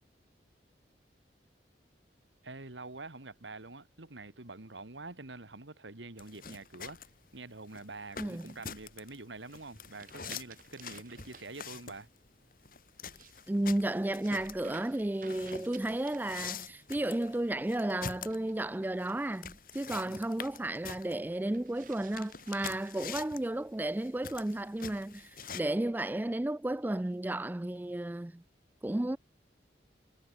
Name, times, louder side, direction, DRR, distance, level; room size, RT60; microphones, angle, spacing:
voice 1, 2.4-7.0 7.3-12.1 20.0-20.2, right 3 dB, 85° right, 2.2 m, -46 dB
sound 1, 6.2-25.6, left 6 dB, 50° left, 2.8 m, -46 dB
voice 2, 8.2-8.5 13.5-28.4 28.8-29.2, right 1 dB, 10° right, 0.3 m, -33 dB
sound 2, 9.5-11.5 12.9-16.8 18.2-19.5 21.4-23.8 24.5-25.5, right 7 dB, 45° right, 7.8 m, -55 dB
head